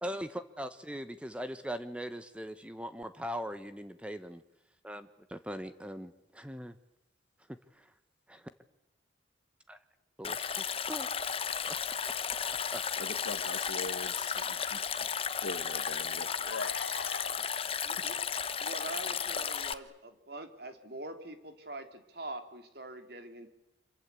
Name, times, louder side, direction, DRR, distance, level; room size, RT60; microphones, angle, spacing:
voice 1, 0.0-4.4 4.8-6.8 7.4-8.0 8.3-8.5 9.7-9.8 10.2-11.1 11.6-11.7 12.0-12.1 12.7-12.8, equal, 5° right, 10 dB, 0.9 m, -41 dB
Stream, 10.2-19.7, left 7 dB, 30° left, 0.9 m, -34 dB
voice 2, 13.0-15.1 15.4-18.0, left 3 dB, 75° left, 11 dB, 1.4 m, -42 dB
voice 3, 17.8-18.2 18.6-23.5, right 2 dB, 55° right, 7 dB, 3.1 m, -44 dB
27.0 x 23.5 x 8.3 m, 0.89 s
head